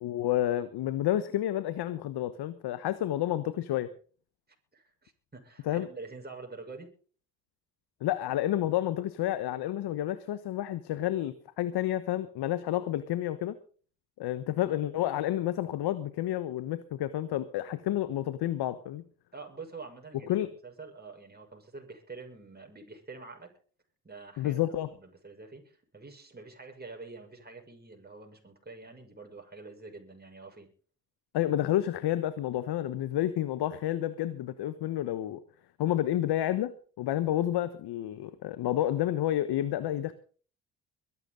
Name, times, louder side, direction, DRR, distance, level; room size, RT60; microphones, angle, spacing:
voice 1, 0.0-3.9 5.7-5.9 8.0-13.6 14.2-19.0 20.3-20.5 24.4-24.9 31.3-35.4 35.8-40.1, left 13 dB, 65° left, 14 dB, 1.2 m, -30 dB
voice 2, 4.7-6.9 19.3-20.4 20.6-23.5 24.0-24.6 24.9-30.7, right 3 dB, 25° right, 2 dB, 6.3 m, -46 dB
22.5 x 12.0 x 3.9 m, 0.42 s
hypercardioid pair, 55°, 42 cm